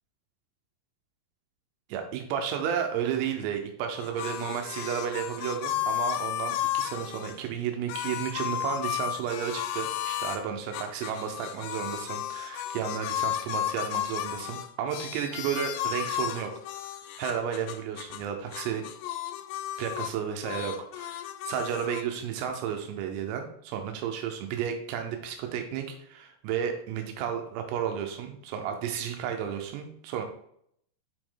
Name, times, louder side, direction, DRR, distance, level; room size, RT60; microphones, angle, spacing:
voice 1, 1.9-16.5 16.8-16.9 17.2-18.9 19.8-30.2, right 8 dB, 90° right, 4 dB, 3.6 m, -32 dB
sound 1, 4.0-7.4 7.9-10.4 10.7-18.3 18.5-20.2 20.4-22.0, left 12 dB, 90° left, 3.3 m, -33 dB
7.8 x 5.0 x 3.9 m, 0.69 s
omnidirectional pair, 5.9 m